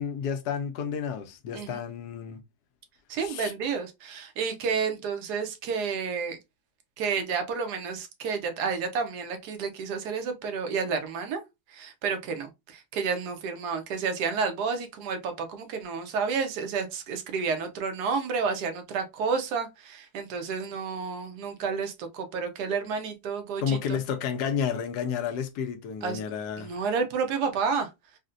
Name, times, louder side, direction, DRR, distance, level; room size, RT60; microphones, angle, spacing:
voice 1, 0.0-2.4 3.2-3.5 23.6-26.8, left 7 dB, 85° left, 1.2 m, -31 dB
voice 2, 1.5-1.8 3.1-6.4 7.0-11.4 11.7-24.0 26.0-26.2 26.6-27.9, right 5 dB, 85° right, 1.2 m, -30 dB
4.0 x 2.1 x 2.5 m
omnidirectional pair, 1.7 m